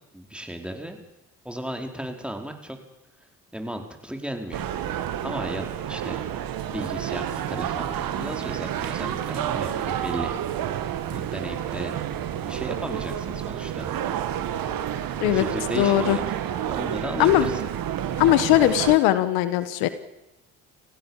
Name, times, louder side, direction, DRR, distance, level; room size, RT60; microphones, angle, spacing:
voice 1, 0.1-1.0 1.4-2.8 3.5-4.7 5.2-6.2 6.7-10.3 11.1-12.0 12.3-13.9 15.2-16.2 16.7-17.6, right 1 dB, 5° right, 4 dB, 4.7 m, -35 dB
sound 1, 4.5-19.0, right 10 dB, 65° right, 2.0 m, -29 dB
voice 2, 15.8-16.2 17.2-17.5 18.2-19.9, left 14 dB, 80° left, 13 dB, 1.4 m, -19 dB
29.5 x 16.0 x 7.4 m, 0.94 s
hypercardioid pair, 55°, 38 cm